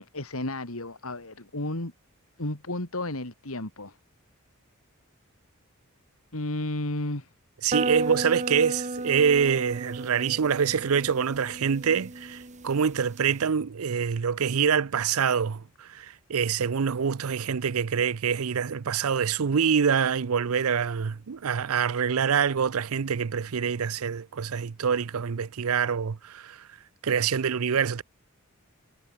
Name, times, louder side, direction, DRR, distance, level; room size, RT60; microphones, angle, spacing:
voice 1, 0.0-1.9 2.4-4.0 6.3-7.3, left 1 dB, 75° left, 3.0 m, -32 dB
voice 2, 7.6-26.7 27.0-28.0, right 7 dB, 80° right, 0.6 m, -25 dB
sound 1, 7.7-13.5, right 2 dB, 35° right, 1.5 m, -35 dB
head